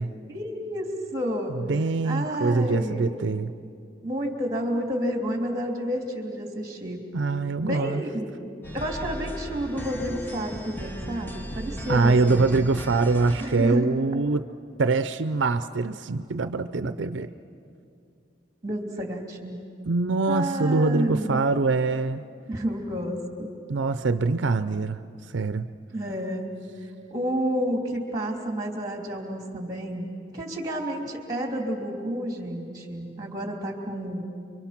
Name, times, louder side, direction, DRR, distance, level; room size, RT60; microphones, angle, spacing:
voice 1, 0.3-1.6 2.0-3.1 4.0-7.0 7.6-8.5 8.7-12.4 13.4-13.9 16.8-16.9 18.6-19.6 20.3-21.4 22.5-23.5 25.9-26.5 27.1-34.2, equal, 20° right, 1 dB, 3.1 m, -30 dB
voice 2, 1.7-3.5 7.1-8.0 11.9-14.5 14.8-17.3 19.9-22.2 23.7-25.0 25.3-25.7, right 3 dB, 75° right, 11 dB, 0.5 m, -24 dB
sound 1, 8.6-13.7, equal, 10° left, 1.0 m, -36 dB
29.5 x 24.0 x 5.9 m, 2.5 s
head